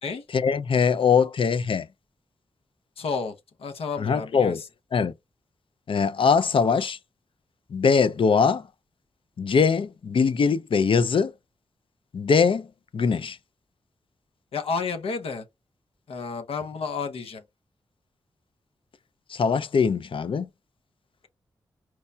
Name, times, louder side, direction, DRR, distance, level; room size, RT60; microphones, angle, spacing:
voice 1, 0.3-1.9 4.0-4.6 4.9-5.1 5.9-7.0 7.7-8.7 9.4-11.3 12.1-12.7 12.9-13.4 19.3-20.5, left 5 dB, 65° left, 0.5 m, -22 dB
voice 2, 3.0-3.3 3.6-4.6 14.5-15.4 16.1-17.4, left 5 dB, 85° left, 0.8 m, -31 dB
4.6 x 2.1 x 2.6 m
cardioid pair, 45°, 10 cm